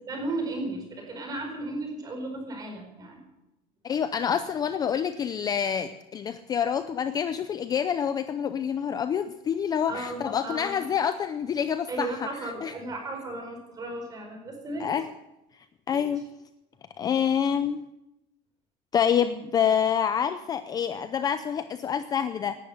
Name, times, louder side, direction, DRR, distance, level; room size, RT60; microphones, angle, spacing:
voice 1, 0.1-3.2 9.9-10.8 11.9-14.9 15.9-16.1, right 2 dB, 20° right, 3 dB, 4.7 m, -35 dB
voice 2, 3.8-12.1 12.4-12.7 14.8-15.1 15.9-16.2 17.0-17.8 18.9-22.6, left 8 dB, 20° left, 11 dB, 0.5 m, -27 dB
18.0 x 11.5 x 6.7 m, 0.91 s
cardioid pair, 165°, 17 cm